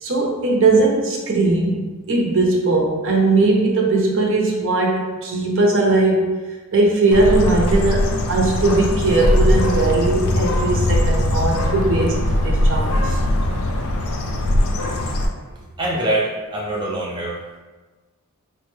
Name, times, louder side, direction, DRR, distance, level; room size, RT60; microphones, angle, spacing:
voice 1, 0.0-6.3 6.7-13.2, right 2 dB, 60° right, -1 dB, 0.7 m, -19 dB
Bird, 7.1-15.3, left 1 dB, 65° left, 0.4 m, -20 dB
voice 2, 15.8-17.6, right 1 dB, 20° right, -5 dB, 0.4 m, -24 dB
3.5 x 2.1 x 3.1 m, 1.2 s
head